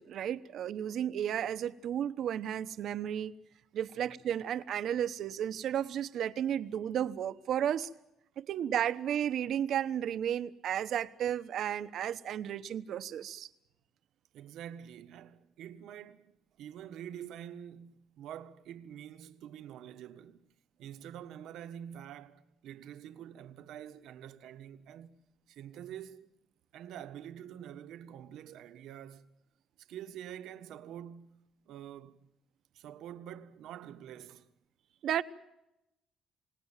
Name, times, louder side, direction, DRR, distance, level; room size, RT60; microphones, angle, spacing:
voice 1, 0.0-3.3 3.7-7.9 8.4-13.5 35.0-35.2, right 10 dB, 60° right, 1.0 m, -33 dB
voice 2, 14.3-16.3 16.6-20.5 20.8-25.2 25.5-26.3 26.7-29.3 29.8-32.2 32.7-34.5, right 10 dB, 75° right, 1.5 m, -47 dB
29.0 x 18.5 x 7.4 m
cardioid pair, 140°, 0 cm